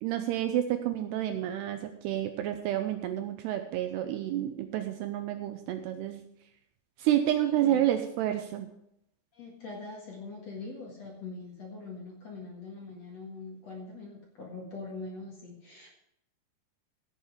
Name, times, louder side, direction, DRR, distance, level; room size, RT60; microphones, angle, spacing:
voice 1, 0.0-6.2 7.0-8.7, right 12 dB, 80° right, 7 dB, 2.5 m, -29 dB
voice 2, 7.5-7.9 9.3-15.9, left 3 dB, 50° left, -2 dB, 2.2 m, -43 dB
16.5 x 7.3 x 4.9 m, 0.79 s
omnidirectional pair, 5.3 m